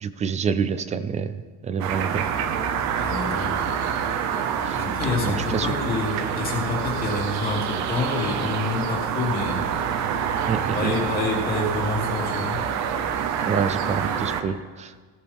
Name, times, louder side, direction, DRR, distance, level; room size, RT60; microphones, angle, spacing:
voice 1, 0.0-2.3 4.7-4.8 5.2-5.7 10.5-10.9 13.4-15.0, right 6 dB, 20° right, 13 dB, 0.4 m, -27 dB
sound 1, 1.8-14.4, right 7 dB, 55° right, 0.9 m, -27 dB
voice 2, 3.0-3.7 4.7-9.7 10.7-12.6, left 3 dB, 25° left, -3 dB, 2.8 m, -27 dB
16.5 x 14.5 x 3.5 m, 1.5 s
cardioid pair, 175°, 33 cm